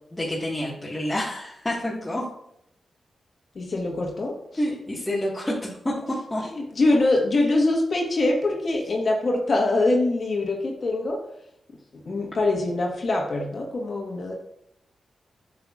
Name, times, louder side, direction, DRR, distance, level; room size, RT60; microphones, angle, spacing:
voice 1, 0.1-2.3 4.6-5.9 6.3-6.4, left 1 dB, 15° left, -6 dB, 1.6 m, -28 dB
voice 2, 3.5-4.6 6.5-11.2 11.9-14.3, left 2 dB, 55° left, 0 dB, 1.4 m, -24 dB
7.9 x 6.4 x 2.5 m, 0.76 s
cardioid pair, 60°, 0 cm